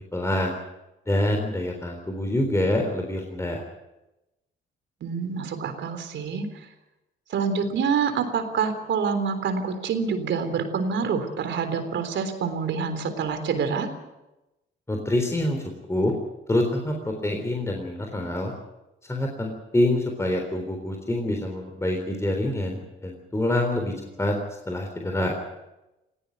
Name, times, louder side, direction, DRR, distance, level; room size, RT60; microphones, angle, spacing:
voice 1, 0.1-0.5 1.1-3.6 14.9-16.1 16.5-18.5 19.0-23.9 24.2-24.4 24.7-25.3, left 1 dB, 15° left, 2 dB, 3.8 m, -26 dB
voice 2, 5.0-6.7 7.3-13.9, right 6 dB, 70° right, 8 dB, 3.6 m, -27 dB
19.5 x 16.5 x 9.4 m, 0.98 s
cardioid pair, 90°, 20 cm